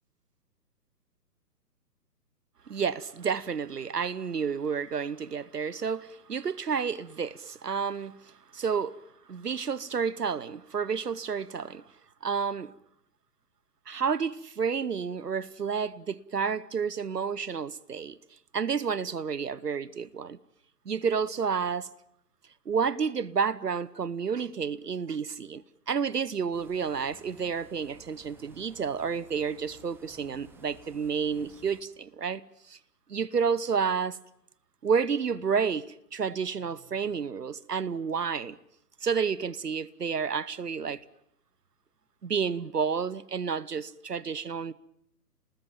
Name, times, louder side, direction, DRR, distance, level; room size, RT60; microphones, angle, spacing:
voice 1, 2.7-9.0 9.3-11.8 12.2-12.7 13.9-18.2 18.5-20.4 20.9-21.9 22.7-32.4 32.7-32.8 33.1-34.2 34.8-38.6 39.0-41.0 42.2-44.7, right 6 dB, 70° right, 1.0 m, -30 dB
sound 1, 26.5-31.8, right 3 dB, 5° right, 1.7 m, -55 dB
29.5 x 19.5 x 9.0 m
figure-of-eight pair, 130°, 49 cm